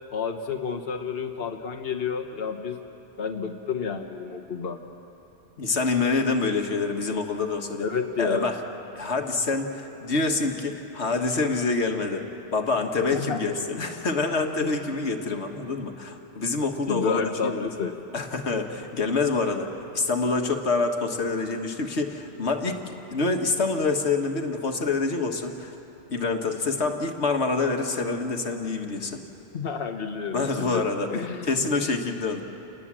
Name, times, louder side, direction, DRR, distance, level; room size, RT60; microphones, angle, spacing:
voice 1, 0.1-2.8 3.2-4.8 7.8-8.5 13.1-13.4 16.9-17.9 29.5-30.8 31.1-31.6, left 5 dB, 65° left, 4 dB, 1.4 m, -30 dB
voice 2, 5.6-7.9 8.2-8.6 8.9-12.3 12.5-17.7 18.1-25.7 26.1-29.2 30.3-31.1 31.5-32.4, left 3 dB, 90° left, 4 dB, 1.8 m, -26 dB
29.5 x 19.5 x 7.5 m, 3.0 s
omnidirectional pair, 1.1 m